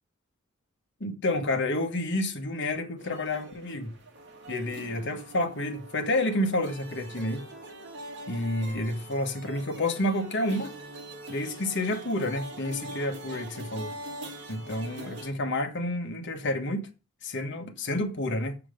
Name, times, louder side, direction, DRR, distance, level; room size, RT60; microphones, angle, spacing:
voice 1, 1.0-3.9 4.5-7.5 8.3-10.8 11.3-13.9 14.5-16.8 17.2-18.6, left 1 dB, 55° left, 1.5 m, -29 dB
sound 1, 3.0-15.3, right 1 dB, 60° right, 2.5 m, -43 dB
7.5 x 7.1 x 5.1 m
head